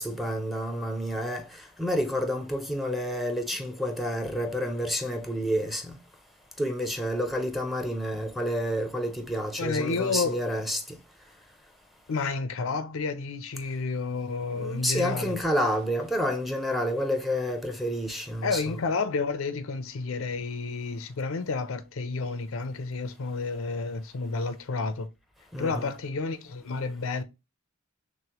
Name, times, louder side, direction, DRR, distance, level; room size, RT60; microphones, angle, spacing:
voice 1, 0.0-1.4 1.8-5.9 6.6-11.0 14.5-18.8 25.5-25.9, equal, ahead, 0.6 m, -29 dB
voice 2, 9.6-10.4 12.1-15.4 18.4-25.1 25.6-27.2, left 4 dB, 80° left, 0.5 m, -30 dB
6.1 x 2.1 x 2.9 m
head